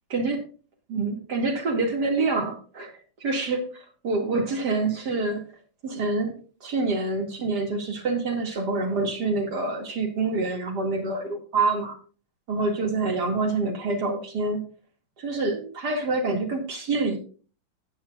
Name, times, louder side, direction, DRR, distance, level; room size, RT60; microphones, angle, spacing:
voice 1, 0.1-0.4 0.9-2.9 3.2-3.7 4.0-5.4 5.8-6.3 6.6-12.0 12.5-14.6 15.2-17.2, right 3 dB, 55° right, 3 dB, 2.7 m, -26 dB
15.5 x 8.7 x 2.4 m, 0.38 s
omnidirectional pair, 2.1 m